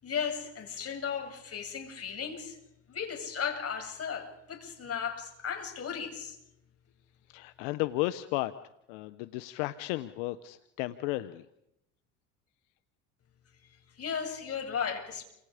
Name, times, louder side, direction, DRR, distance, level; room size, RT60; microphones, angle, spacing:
voice 1, 0.0-2.6 2.9-6.4 14.0-15.2, left 7 dB, 40° left, 4 dB, 8.0 m, -35 dB
voice 2, 7.3-8.5 8.9-11.4, left 18 dB, 80° left, 13 dB, 1.1 m, -33 dB
29.5 x 27.0 x 5.1 m, 0.81 s
supercardioid pair, 85°, 36 cm